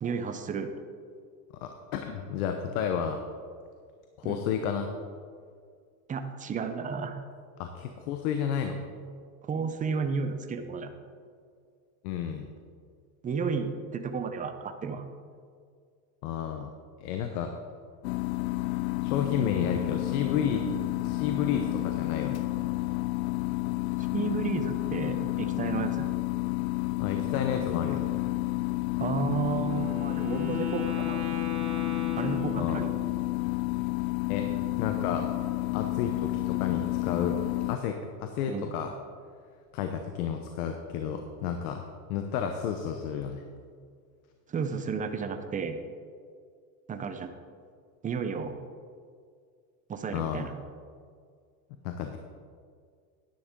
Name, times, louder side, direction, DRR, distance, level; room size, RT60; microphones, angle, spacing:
voice 1, 0.0-0.7 4.2-4.4 6.1-7.2 9.4-10.9 13.2-15.0 24.1-26.1 29.0-31.3 32.2-32.9 38.5-38.7 44.5-45.8 46.9-47.3 48.0-48.6 49.9-50.5, right 5 dB, 20° right, 7 dB, 0.7 m, -32 dB
voice 2, 1.6-3.2 4.2-4.9 7.6-8.8 12.0-12.5 16.2-16.7 17.0-17.5 19.0-20.7 21.0-22.5 27.0-28.1 32.5-32.9 34.3-34.5 34.8-35.3 35.7-37.4 37.7-38.9 39.7-43.4 50.1-50.5 51.8-52.2, left 8 dB, 75° left, 5 dB, 1.0 m, -31 dB
sound 1, 18.0-37.8, left 20 dB, 60° left, 0.5 m, -30 dB
Wind instrument woodwind instrument, 29.6-33.2, left 4 dB, 50° right, 2.2 m, -38 dB
10.5 x 10.0 x 3.7 m, 2.1 s
supercardioid pair, 135°, 44 cm